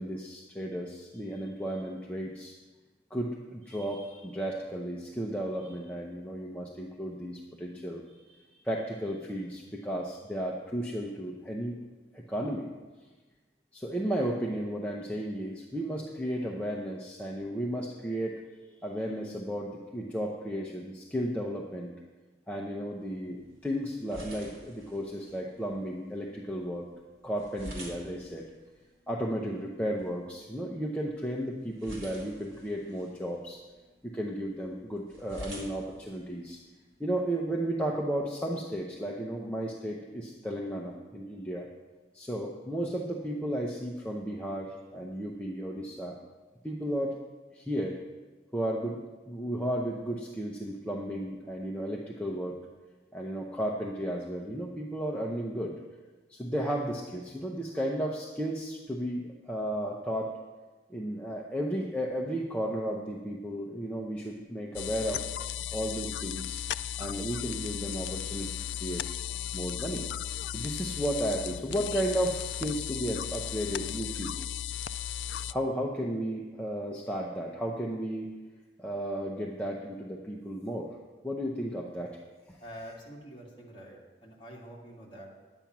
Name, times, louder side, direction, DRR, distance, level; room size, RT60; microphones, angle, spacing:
voice 1, 0.0-2.5 3.1-11.8 12.1-12.7 13.7-21.9 22.5-26.9 27.2-28.5 29.1-33.6 34.0-36.6 37.0-41.6 42.1-46.2 46.6-47.2 47.5-48.0 48.5-49.0 49.3-52.6 53.1-55.8 56.3-60.3 60.9-65.2 65.7-66.6 67.0-69.0 69.5-70.1 70.5-74.3 75.5-78.3 78.8-81.0 81.2-82.2 82.5-82.6, equal, 5° left, -2 dB, 0.8 m, -34 dB
sound 1, 23.0-37.0, equal, 55° right, 2.7 m, -50 dB
sound 2, 64.7-75.5, left 10 dB, 75° left, 0.3 m, -36 dB
voice 2, 82.6-85.3, equal, 25° left, -4 dB, 2.3 m, -46 dB
10.5 x 8.8 x 6.0 m, 1.2 s
head